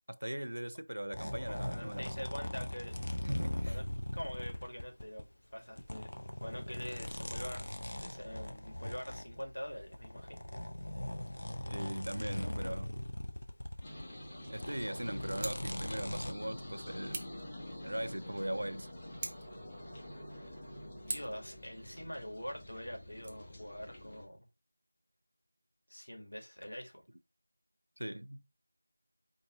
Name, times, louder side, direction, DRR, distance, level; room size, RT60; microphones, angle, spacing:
voice 1, 0.1-2.2 3.2-3.8 11.7-12.9 14.5-17.3 17.8-18.9 28.0-28.5, right 1 dB, 80° right, 0.5 m, -40 dB
sound 1, 1.1-5.2 5.7-14.2 14.4-16.3, left 1 dB, 55° left, 0.8 m, -40 dB
voice 2, 1.5-2.9 3.7-3.8 4.1-5.3 5.5-6.1 6.4-10.5 20.4-20.6 21.1-24.5 25.9-27.0, equal, 80° left, 1.8 m, -44 dB
sound 2, 13.8-24.2, left 1 dB, 15° left, 1.0 m, -47 dB
Scissors, 15.3-15.7 17.1-17.4 19.1-19.6 21.0-21.4 23.1-23.3, right 2 dB, 15° right, 0.6 m, -42 dB
4.7 x 2.6 x 3.7 m
figure-of-eight pair, 175°, 0 cm